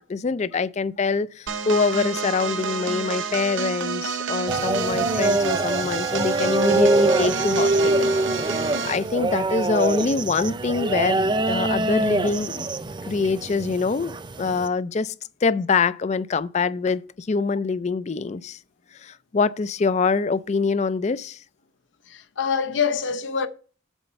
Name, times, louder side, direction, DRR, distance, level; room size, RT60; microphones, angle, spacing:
voice 1, 0.0-7.7 8.0-12.7 13.0-15.1 15.4-18.6 19.0-21.4, left 4 dB, 35° left, 0.4 m, -25 dB
sound 1, 1.5-9.1, right 5 dB, 75° right, 0.7 m, -29 dB
sound 2, 4.5-14.7, right 2 dB, 25° right, 0.5 m, -24 dB
voice 2, 22.1-23.5, left 6 dB, 70° left, 0.7 m, -25 dB
7.1 x 4.3 x 6.8 m
head